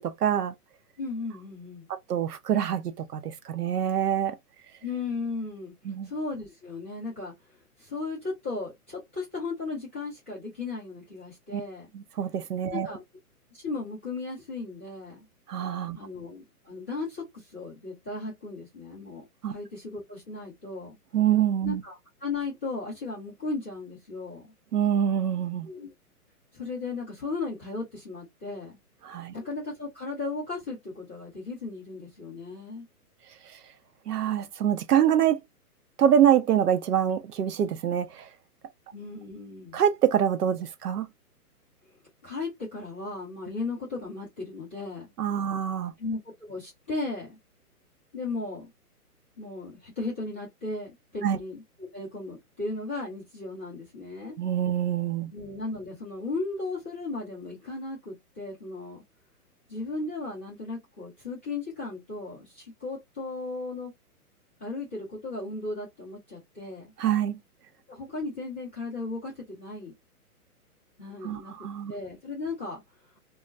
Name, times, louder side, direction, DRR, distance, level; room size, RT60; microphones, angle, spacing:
voice 1, 0.2-0.5 1.9-4.4 5.8-6.1 11.5-11.6 11.9-12.9 15.5-16.0 19.4-19.5 21.1-21.8 24.7-25.7 29.0-29.3 34.1-35.4 36.0-38.3 39.7-41.1 45.2-45.9 51.2-51.4 54.4-55.3 67.0-67.4 71.2-71.9, right 9 dB, 80° right, 0.7 m, -25 dB
voice 2, 1.0-1.9 4.8-5.7 6.0-7.3 7.8-11.9 12.7-13.0 13.5-15.2 15.9-21.0 21.6-24.5 25.6-25.9 26.5-28.8 29.3-32.9 38.9-39.8 42.2-45.1 46.0-46.2 46.5-47.4 48.1-48.7 49.4-54.4 55.3-59.0 59.7-63.9 64.6-66.9 67.9-69.9 71.0-71.5 71.9-72.8, left 3 dB, 10° left, 0.4 m, -36 dB
2.3 x 2.1 x 3.8 m
hypercardioid pair, 145°, 46 cm